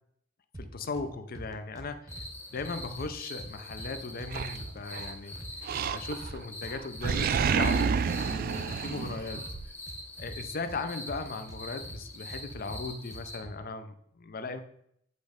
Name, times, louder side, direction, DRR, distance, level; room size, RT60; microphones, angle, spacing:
sound 1, 0.5-1.1 1.4-2.3 2.6-4.3 4.6-5.5 5.8-7.5 7.8-8.8 9.1-10.8 11.1-12.0 12.3-13.5, right 1 dB, 20° right, 0.7 m, -44 dB
voice 1, 0.6-2.1 2.5-5.4 5.9-9.4 10.2-14.6, left 3 dB, 50° left, 9 dB, 0.6 m, -37 dB
sound 2, 2.1-13.4, left 1 dB, 10° left, 1.0 m, -44 dB
Animal, 4.3-5.1 5.6-6.4 6.7-9.7, right 6 dB, 50° right, 0.3 m, -29 dB
8.4 x 3.1 x 5.0 m, 0.71 s
head